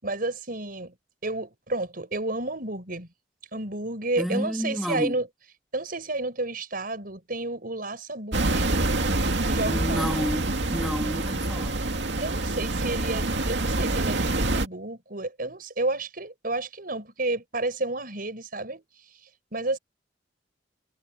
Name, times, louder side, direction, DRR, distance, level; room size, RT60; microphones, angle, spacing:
voice 1, 0.0-1.0 1.2-3.1 3.5-5.3 5.7-8.7 9.4-10.3 12.2-18.8 19.2-19.8, right 2 dB, 55° right, 6.2 m, -31 dB
voice 2, 4.2-5.1 9.6-11.8, equal, ahead, 3.0 m, -30 dB
sound 1, 8.3-14.7, right 2 dB, 85° right, 2.3 m, -26 dB
head